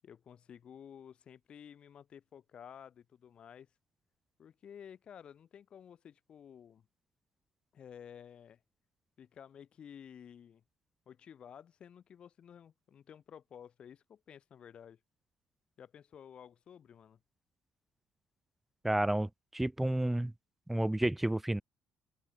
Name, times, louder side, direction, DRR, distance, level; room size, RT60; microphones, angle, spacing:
voice 1, 0.0-3.7 4.4-6.9 7.7-8.6 9.2-10.6 11.1-15.0 15.8-17.2, left 8 dB, 50° left, 7.7 m, -53 dB
voice 2, 18.8-20.3 20.7-21.6, right 1 dB, 5° right, 1.6 m, -31 dB
open air
cardioid pair, 125°, 2 cm